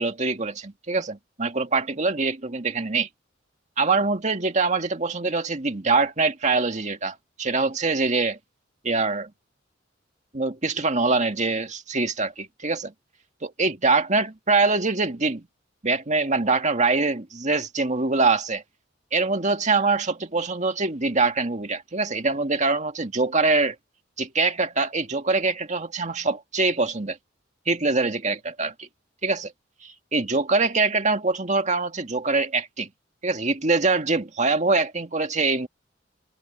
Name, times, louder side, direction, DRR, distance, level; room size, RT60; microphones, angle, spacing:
voice 1, 0.0-3.1 3.8-8.4 8.8-9.3 10.3-12.9 13.4-15.5 15.8-18.6 19.1-23.8 24.2-27.2 27.7-28.9 29.2-29.5 29.8-32.9 33.2-35.7, right 3 dB, 40° right, 2.0 m, -24 dB
head